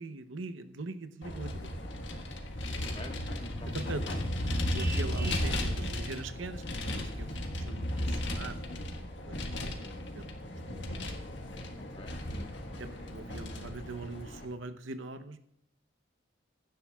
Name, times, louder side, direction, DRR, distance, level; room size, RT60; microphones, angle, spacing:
voice 1, 0.0-1.9 3.7-6.6 7.0-8.6 9.3-10.3 10.7-11.2 12.8-15.4, right 3 dB, 80° right, 11 dB, 0.8 m, -42 dB
Vehicle, 1.2-14.4, left 1 dB, 65° left, 1.5 m, -35 dB
voice 2, 2.8-3.9 6.8-7.0 11.8-12.5, left 1 dB, 30° left, 3 dB, 1.5 m, -48 dB
Vehicle horn car horn honking, 4.8-5.6, right 5 dB, 15° right, 0.7 m, -43 dB
16.0 x 11.5 x 2.4 m, 0.78 s
head